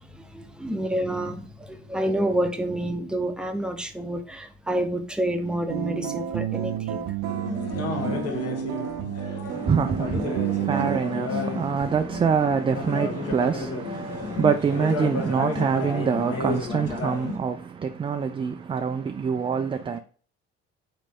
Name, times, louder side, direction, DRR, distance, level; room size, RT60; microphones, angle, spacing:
voice 1, 0.0-7.1, right 1 dB, 5° right, 0.7 m, -28 dB
sound 1, 5.7-11.0, right 11 dB, 70° right, 0.6 m, -30 dB
sound 2, 7.2-17.4, left 3 dB, 55° left, 1.3 m, -32 dB
voice 2, 9.5-20.0, right 6 dB, 20° right, 0.3 m, -25 dB
4.0 x 3.2 x 3.5 m
supercardioid pair, 80°, 29 cm